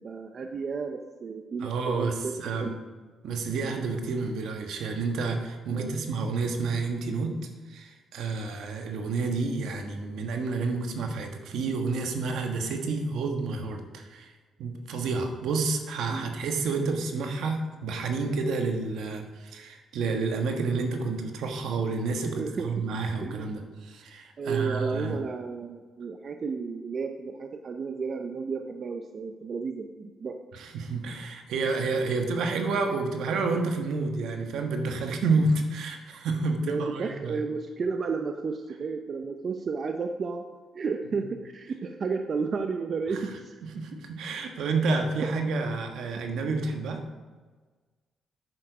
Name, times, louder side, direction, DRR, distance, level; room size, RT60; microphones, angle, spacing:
voice 1, 0.0-2.8 5.7-6.1 16.1-16.3 22.3-22.7 23.2-23.5 24.4-30.4 36.6-40.4 40.7-43.5 46.2-46.3, right 4 dB, 45° right, 5 dB, 0.6 m, -32 dB
voice 2, 1.6-2.7 3.2-7.4 7.7-14.3 14.6-25.1 30.5-37.4 43.1-43.2 43.6-47.0, right 3 dB, 75° right, 4 dB, 1.3 m, -29 dB
8.5 x 6.9 x 5.0 m, 1.4 s
cardioid pair, 90°, 0 cm